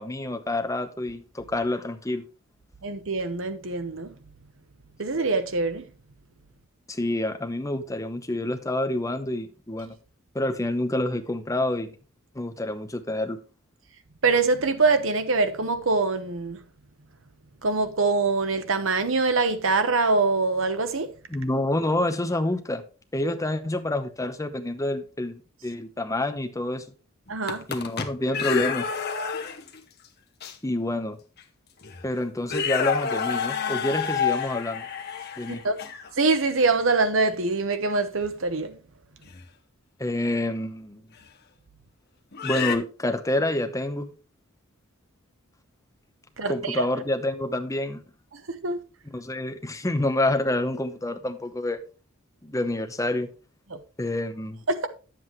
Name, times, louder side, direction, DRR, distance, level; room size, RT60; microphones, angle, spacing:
voice 1, 0.0-2.2 6.9-9.9 10.3-11.9 12.3-13.4 21.3-22.8 23.1-26.8 27.7-28.9 30.6-31.2 32.0-34.9 35.4-35.6 40.0-41.0 42.4-44.1 46.5-48.0 49.0-51.8 52.4-53.3 54.0-54.6, left 1 dB, 15° left, 0.8 m, -28 dB
voice 2, 2.8-4.1 5.0-5.8 14.2-16.6 17.6-21.1 27.3-27.6 35.6-35.8 36.2-38.7 46.4-46.9 48.5-48.8 54.7-54.9, right 3 dB, 65° right, 1.0 m, -24 dB
sound 1, 27.3-29.8 30.4-30.5 31.4-31.5 31.8-32.0 32.4-36.1 39.3-39.4 41.2-41.3 42.3-42.8, left 6 dB, 50° left, 1.1 m, -28 dB
9.4 x 7.7 x 3.2 m
head